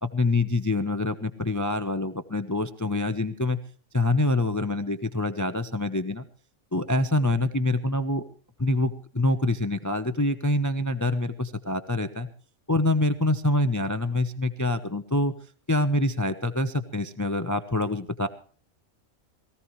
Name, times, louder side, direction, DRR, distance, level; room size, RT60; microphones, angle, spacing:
voice 1, 0.0-3.6 3.9-6.2 6.7-8.2 8.6-12.3 12.7-15.3 15.7-18.3, left 2 dB, 15° left, 10 dB, 0.7 m, -25 dB
22.0 x 16.0 x 3.2 m, 0.42 s
omnidirectional pair, 1.4 m